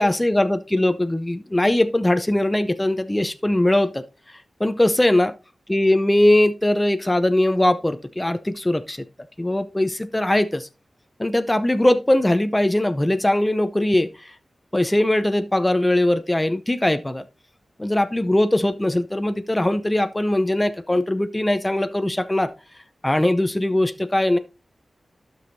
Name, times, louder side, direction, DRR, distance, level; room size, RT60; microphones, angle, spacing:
voice 1, 0.0-4.0 4.6-5.3 5.7-9.0 9.4-10.7 11.2-14.3 14.7-17.2 17.8-22.5 23.0-24.4, left 1 dB, 15° left, 0.6 m, -20 dB
11.5 x 6.3 x 2.6 m
cardioid pair, 50°, 0 cm